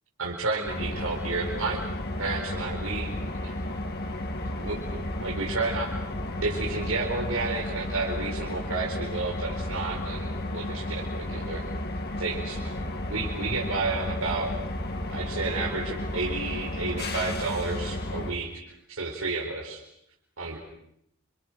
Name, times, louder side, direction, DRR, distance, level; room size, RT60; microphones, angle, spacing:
voice 1, 0.2-1.8 2.2-3.1 3.4-3.5 4.4-6.0 6.4-11.6 12.2-14.5 15.1-18.5 18.9-19.8 20.4-20.6, right 3 dB, 90° right, -1 dB, 4.5 m, -31 dB
sound 1, 0.7-18.3, left 1 dB, 50° left, 2.7 m, -33 dB
29.0 x 28.0 x 6.4 m, 0.75 s
head